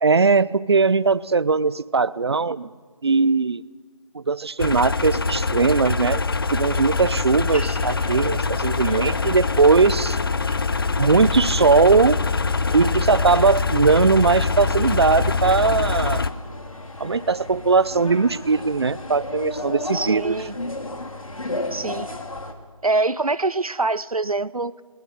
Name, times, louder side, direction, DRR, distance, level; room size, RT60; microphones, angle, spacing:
voice 1, 0.0-2.7 3.0-3.6 4.1-6.2 6.5-10.2 10.5-10.6 11.0-12.2 12.7-16.3 17.0-20.4, right 4 dB, 50° right, 20 dB, 0.7 m, -19 dB
sound 1, 4.6-16.3, left 4 dB, 40° left, 0.9 m, -24 dB
sound 2, 6.4-22.5, left 2 dB, 70° left, 3.3 m, -35 dB
voice 2, 19.9-20.5 21.7-22.1 22.8-24.8, right 3 dB, 90° right, 18 dB, 0.8 m, -24 dB
29.0 x 22.0 x 6.8 m, 1.5 s
figure-of-eight pair, 160°, 18 cm